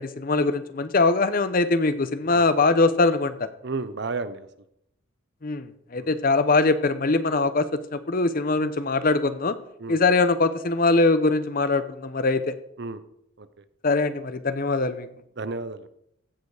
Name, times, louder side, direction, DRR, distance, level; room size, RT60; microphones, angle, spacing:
voice 1, 0.0-3.5 5.4-7.7 7.9-9.5 9.9-12.5 13.8-15.1, left 3 dB, 40° left, 12 dB, 0.7 m, -22 dB
voice 2, 3.6-4.5 6.0-6.1 9.8-10.0 12.8-13.0 13.4-13.6 15.4-15.9, right 3 dB, 55° right, 13 dB, 0.7 m, -32 dB
15.5 x 6.8 x 4.9 m, 0.78 s
head